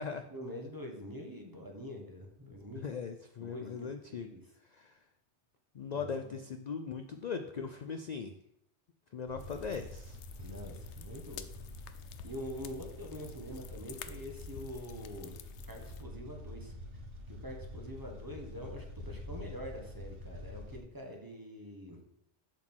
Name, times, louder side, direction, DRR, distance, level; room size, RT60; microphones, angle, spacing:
voice 1, 0.3-2.9 3.4-4.4 5.9-6.3 10.4-11.5 12.2-15.4 15.7-16.7 17.3-22.0, equal, 20° right, 1 dB, 1.2 m, -45 dB
voice 2, 2.7-4.3 4.7-5.0 5.7-8.3 9.1-10.2, left 5 dB, 60° left, 7 dB, 0.4 m, -39 dB
sound 1, 9.3-20.8, left 1 dB, 55° right, 1.4 m, -47 dB
sound 2, 9.4-16.0, left 9 dB, 75° left, 0.8 m, -51 dB
7.2 x 4.2 x 6.1 m, 0.78 s
omnidirectional pair, 1.2 m